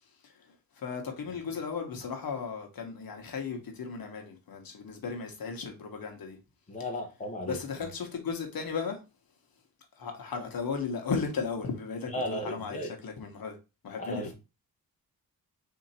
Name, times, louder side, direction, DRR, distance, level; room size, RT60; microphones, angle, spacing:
voice 1, 0.2-6.4 7.4-9.0 10.0-13.6 13.8-14.3, left 5 dB, 65° left, 1.1 m, -36 dB
voice 2, 6.7-7.9 12.1-12.9 14.0-14.3, left 1 dB, 20° left, 0.8 m, -35 dB
3.8 x 2.8 x 4.1 m
wide cardioid pair, 135°, 37 cm